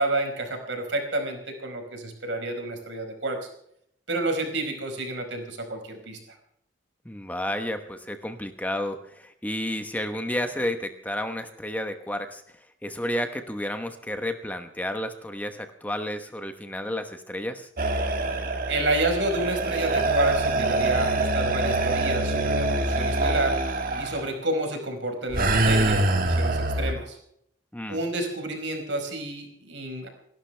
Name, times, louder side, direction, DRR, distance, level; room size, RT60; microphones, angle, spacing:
voice 1, 0.0-3.4 4.1-6.2 18.7-23.6 24.0-27.2 27.9-30.1, right 2 dB, 75° right, 3 dB, 4.9 m, -29 dB
voice 2, 7.0-12.4 12.8-17.7 27.7-28.0, left 1 dB, 10° left, 7 dB, 1.1 m, -31 dB
sound 1, 17.8-24.3 25.3-26.9, right 2 dB, 50° right, 1.8 m, -24 dB
29.5 x 12.0 x 3.4 m, 0.71 s
head